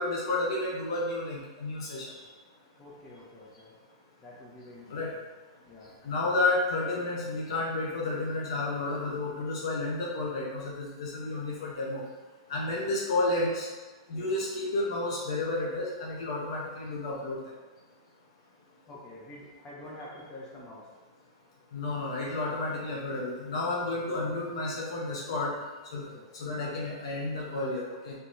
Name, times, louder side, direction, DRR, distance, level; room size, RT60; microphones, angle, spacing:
voice 1, 0.0-2.1 4.9-5.1 6.0-12.0 12.5-13.7 14.1-17.4 21.7-25.5 25.9-26.1 26.3-28.1, left 2 dB, 65° left, -3 dB, 0.7 m, -31 dB
voice 2, 2.8-3.7 4.2-5.2 5.7-5.9 10.2-10.3 12.7-12.9 14.1-14.3 18.9-20.9 26.1-26.2, left 1 dB, 25° left, -5 dB, 1.1 m, -47 dB
4.2 x 2.7 x 2.5 m, 1.2 s
hypercardioid pair, 130°, 3 cm